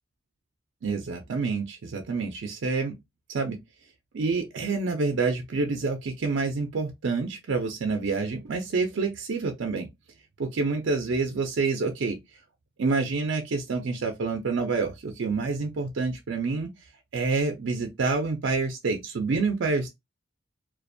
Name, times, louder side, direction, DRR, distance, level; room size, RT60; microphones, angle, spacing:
voice 1, 0.8-2.9 3.3-3.6 4.1-9.9 10.4-12.2 12.8-16.7 17.1-19.9, right 4 dB, 65° right, 0.4 m, -27 dB
2.4 x 2.1 x 2.5 m
head